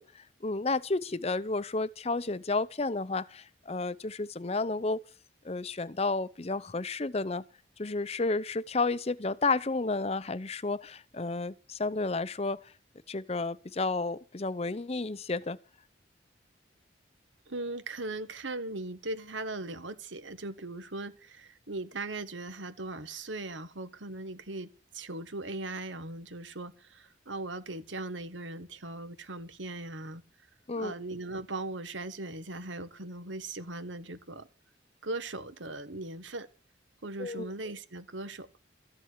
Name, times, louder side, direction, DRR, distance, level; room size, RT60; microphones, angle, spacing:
voice 1, 0.0-5.0 5.4-7.4 7.8-12.7 13.1-15.6 30.7-30.9 37.2-37.5, left 3 dB, 35° left, 0.6 m, -31 dB
voice 2, 17.5-30.2 30.8-34.5 35.0-36.5 37.0-38.5, right 2 dB, 85° right, 1.6 m, -39 dB
14.0 x 7.3 x 9.5 m
head